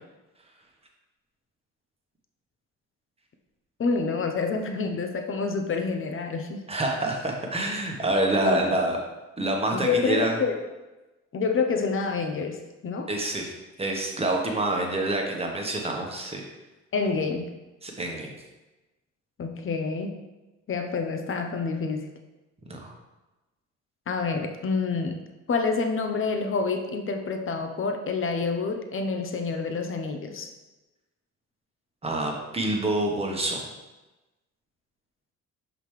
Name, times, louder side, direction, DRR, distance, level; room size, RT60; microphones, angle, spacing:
voice 1, 3.8-6.7 8.4-8.6 9.7-10.6 11.3-13.1 16.9-17.5 19.4-20.1 20.7-22.1 24.1-25.2 25.5-30.5, left 4 dB, 45° left, 5 dB, 0.8 m, -28 dB
voice 2, 6.7-9.0 9.4-10.3 13.1-13.5 13.8-16.4 17.8-18.3 22.7-22.9 32.0-33.7, right 1 dB, 20° right, 0 dB, 1.2 m, -27 dB
5.9 x 5.3 x 3.2 m, 1.1 s
cardioid pair, 90°, 30 cm